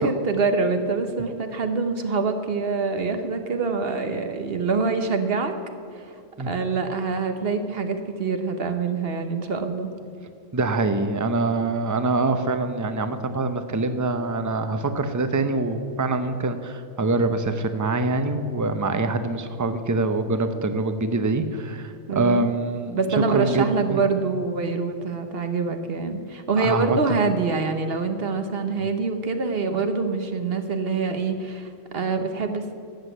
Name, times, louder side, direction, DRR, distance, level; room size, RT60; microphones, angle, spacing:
voice 1, 0.0-5.5 5.9-6.1 6.4-9.9 22.1-22.5 22.9-32.7, right 4 dB, 50° right, 7 dB, 1.2 m, -25 dB
voice 2, 10.5-23.0 23.3-24.0 26.6-27.1, right 3 dB, 20° right, 9 dB, 0.6 m, -24 dB
13.0 x 8.2 x 7.9 m, 2.4 s
omnidirectional pair, 1.3 m